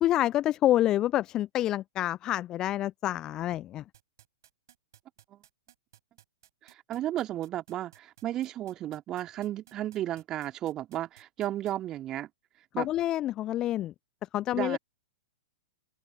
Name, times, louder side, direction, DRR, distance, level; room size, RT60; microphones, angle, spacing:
voice 1, 0.0-3.8 12.8-13.9 14.3-14.8, left 13 dB, 25° left, 0.4 m, -27 dB
sound 1, 3.9-11.7, right 10 dB, 60° right, 7.4 m, -58 dB
voice 2, 6.6-12.3 12.7-12.9 14.5-14.8, right 13 dB, 25° right, 2.7 m, -34 dB
open air
figure-of-eight pair, 105°, 2 cm